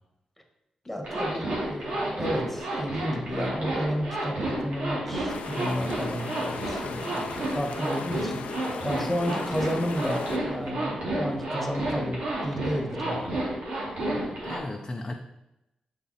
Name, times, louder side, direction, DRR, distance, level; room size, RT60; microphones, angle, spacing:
voice 1, 0.8-8.5 8.8-13.4, equal, 5° left, 3 dB, 1.6 m, -32 dB
Zipper (clothing), 1.0-14.6, right 1 dB, 75° right, 2.7 m, -31 dB
sound 1, 5.3-10.4, left 6 dB, 85° left, 0.6 m, -38 dB
voice 2, 14.1-15.1, left 2 dB, 25° left, 2 dB, 0.6 m, -36 dB
6.7 x 5.6 x 4.3 m, 0.90 s
cardioid pair, 75°, 2 cm